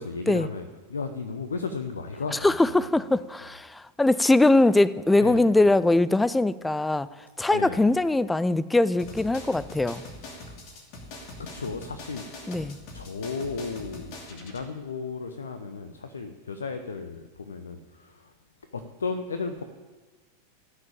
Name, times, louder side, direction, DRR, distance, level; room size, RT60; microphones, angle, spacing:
voice 1, 0.0-3.1 5.2-5.6 7.5-8.0 11.4-12.3 12.9-18.3 18.6-19.6, left 4 dB, 70° left, 9 dB, 0.8 m, -35 dB
voice 2, 2.4-7.1 7.4-10.0 12.5-12.8, left 2 dB, 5° left, 18 dB, 0.5 m, -21 dB
sound 1, 9.0-14.6, left 2 dB, 40° left, 2.7 m, -43 dB
16.5 x 6.6 x 8.8 m, 1.3 s
figure-of-eight pair, 90°, 0 cm